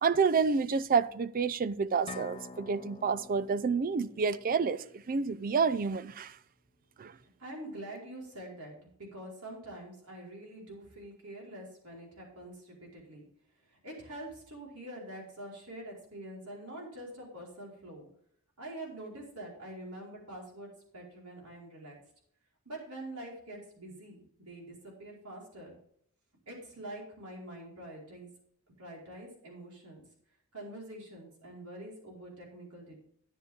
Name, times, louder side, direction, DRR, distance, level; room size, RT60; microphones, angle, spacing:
voice 1, 0.0-6.3 7.0-7.1, right 5 dB, 40° right, 0.4 m, -29 dB
sound 1, 2.1-5.8, left 3 dB, 30° left, 0.6 m, -49 dB
voice 2, 7.4-13.2 13.6-18.1 18.6-22.0 22.6-25.8 26.5-28.3 28.8-30.0 30.5-33.0, right 1 dB, 85° right, 4.7 m, -45 dB
13.0 x 9.9 x 3.7 m
head